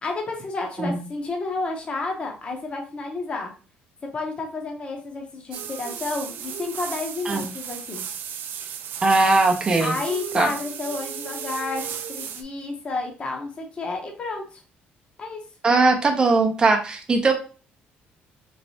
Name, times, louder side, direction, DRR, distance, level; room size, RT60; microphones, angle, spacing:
voice 1, 0.0-3.5 4.1-8.1 9.8-11.8 12.1-14.6 15.2-15.4, left 3 dB, 30° left, 2 dB, 0.8 m, -31 dB
sound 1, 5.5-12.4, right 8 dB, 60° right, 0.4 m, -35 dB
voice 2, 9.0-10.0 10.3-10.5 15.6-17.3, right 3 dB, 25° right, 3 dB, 0.6 m, -19 dB
3.2 x 3.1 x 2.8 m, 0.36 s
cardioid pair, 150°, 4 cm